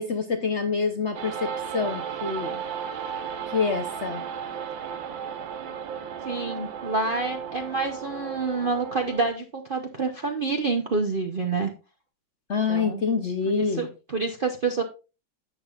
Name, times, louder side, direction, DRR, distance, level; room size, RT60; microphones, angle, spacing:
voice 1, 0.0-2.6 3.5-4.2 12.5-13.9, left 5 dB, 50° left, 0.9 m, -26 dB
sound 1, 1.1-9.3, right 7 dB, 80° right, 1.7 m, -34 dB
voice 2, 6.2-11.7 12.7-13.0 13.5-14.8, right 4 dB, 45° right, 0.7 m, -28 dB
11.0 x 7.8 x 2.4 m
omnidirectional pair, 2.1 m